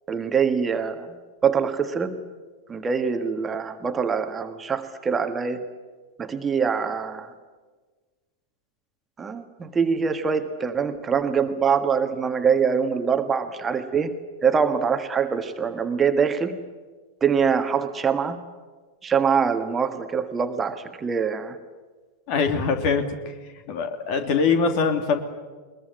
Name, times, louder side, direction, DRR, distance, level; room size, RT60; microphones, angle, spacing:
voice 1, 0.1-1.1 1.4-2.2 2.7-5.7 6.2-7.3 9.2-16.6 17.2-18.4 19.0-21.6, right 6 dB, 20° right, 8 dB, 1.5 m, -24 dB
voice 2, 22.3-23.3 23.7-25.2, left 5 dB, 45° left, 7 dB, 2.9 m, -23 dB
22.0 x 22.0 x 9.7 m, 1.4 s
figure-of-eight pair, 90°, 0 cm